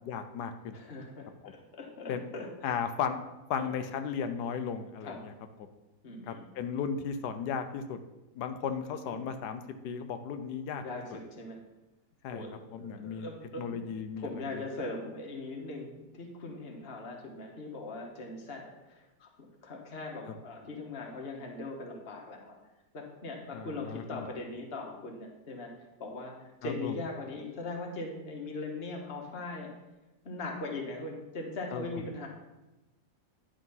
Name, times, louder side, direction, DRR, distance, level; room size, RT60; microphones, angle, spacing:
voice 1, 0.1-0.8 1.4-1.5 2.1-2.2 2.6-3.2 3.5-5.3 6.2-8.0 8.3-10.8 12.2-12.4 12.7-13.3 13.6-14.6 23.5-24.2 26.6-26.9 31.7-31.9, left 7 dB, 80° left, 8 dB, 1.2 m, -35 dB
voice 2, 0.7-2.7 3.6-3.7 5.0-5.2 6.0-6.5 9.0-9.2 10.8-11.6 12.3-13.9 14.2-19.3 19.6-22.6 22.9-29.7 30.2-32.3, left 2 dB, 40° left, 1 dB, 1.3 m, -40 dB
10.0 x 3.8 x 5.4 m, 1.0 s
omnidirectional pair, 1.8 m